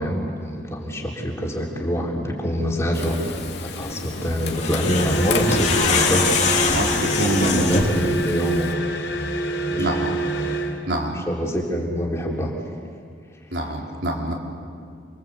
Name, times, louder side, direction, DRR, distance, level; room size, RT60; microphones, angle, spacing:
voice 1, 0.0-3.2 3.6-6.3 7.4-8.7 9.7-10.1 11.1-12.5, equal, 15° left, -2 dB, 4.0 m, -25 dB
Frying (food), 2.9-8.7, left 4 dB, 60° left, 2.6 m, -33 dB
sound 1, 4.4-8.0, left 4 dB, 40° left, 3.0 m, -23 dB
sound 2, 4.9-10.8, right 1 dB, 85° left, 4.1 m, -27 dB
voice 2, 6.6-8.1 9.8-10.2 10.9-11.2 13.5-14.3, right 1 dB, 70° right, -1 dB, 4.7 m, -26 dB
29.0 x 23.5 x 8.4 m, 2.2 s
head